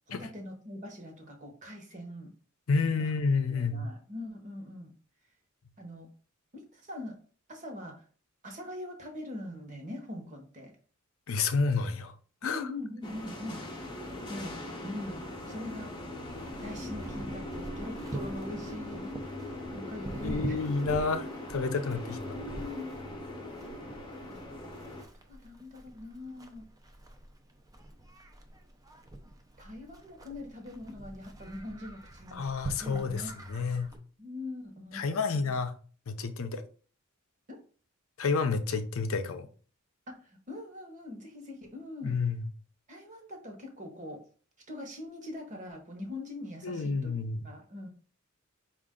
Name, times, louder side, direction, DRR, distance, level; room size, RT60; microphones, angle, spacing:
voice 1, 0.1-2.3 3.0-3.1 3.5-4.9 5.8-6.1 6.5-7.2 7.5-8.1 8.4-10.7 12.4-13.6 14.3-14.6 14.8-16.0 16.5-19.1 19.7-20.7 22.0-23.0 24.3-24.4 25.3-26.7 29.6-32.5 32.8-33.3 34.2-35.6 37.5-37.6 40.2-42.2 42.9-44.2 44.7-47.1 47.4-47.9, left 1 dB, 35° right, 1.1 m, -42 dB
voice 2, 2.7-3.9 11.3-12.1 12.4-12.7 20.2-22.3 32.3-33.9 34.9-35.7 36.1-36.6 38.2-39.5 42.0-42.5 46.6-47.5, left 4 dB, 70° left, 0.5 m, -30 dB
sound 1, 13.0-25.0, left 1 dB, 20° left, 0.8 m, -40 dB
Livestock farm animals working animals, 16.3-34.0, right 1 dB, 15° right, 0.5 m, -45 dB
4.9 x 2.5 x 3.7 m
head